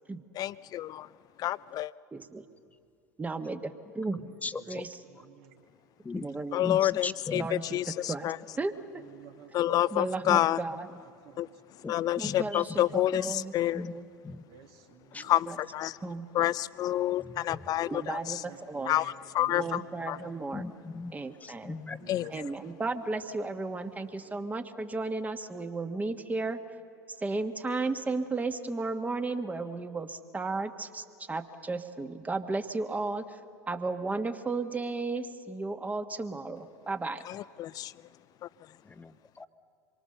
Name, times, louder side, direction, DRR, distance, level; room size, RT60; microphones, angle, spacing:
voice 1, 0.4-1.1 1.4-1.9 6.5-7.4 7.7-8.4 9.5-10.6 11.4-11.5 11.9-13.8 15.2-16.0 16.3-18.4 18.8-20.2 22.1-22.3 37.3-37.9 38.4-38.5, left 13 dB, 40° left, 0.5 m, -28 dB
voice 2, 2.1-2.4 3.2-4.2 4.7-4.9 6.2-6.6 7.3-7.8 8.1-9.0 9.9-10.9 12.2-13.5 13.8-14.1 15.5-15.6 16.0-16.3 17.9-19.0 19.5-20.6 21.1-21.8 22.3-26.6 27.2-33.4 33.7-37.2, right 3 dB, 15° right, 1.5 m, -34 dB
voice 3, 4.1-4.8 6.0-6.3 6.6-7.5 9.6-9.8 10.2-10.4 11.8-11.9 12.2-13.3 13.7-13.9 14.2-14.4 15.1-15.2 16.4-16.5 17.2-17.9 20.5-21.1 21.4-22.1 38.8-39.5, left 4 dB, 15° left, 1.0 m, -39 dB
voice 4, 5.2-5.6 6.1-6.3 9.0-9.5 11.2-11.6 14.5-15.3 18.5-19.1 19.4-19.8 22.0-22.4, right 9 dB, 55° right, 2.3 m, -52 dB
26.5 x 23.5 x 6.8 m
hypercardioid pair, 80°, 10 cm